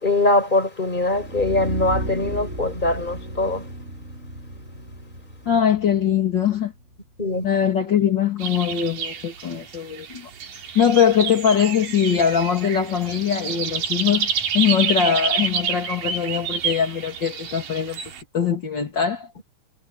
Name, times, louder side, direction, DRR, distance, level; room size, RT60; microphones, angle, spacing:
voice 1, 0.0-3.7 7.2-7.4, left 2 dB, 10° left, 5.2 m, -22 dB
sound 1, 1.0-7.0, right 1 dB, 15° right, 6.4 m, -34 dB
voice 2, 5.5-6.7 7.4-10.3 10.7-18.0 18.3-19.3, left 8 dB, 35° left, 2.0 m, -21 dB
sound 2, 8.4-18.2, right 6 dB, 55° right, 4.2 m, -28 dB
omnidirectional pair, 4.8 m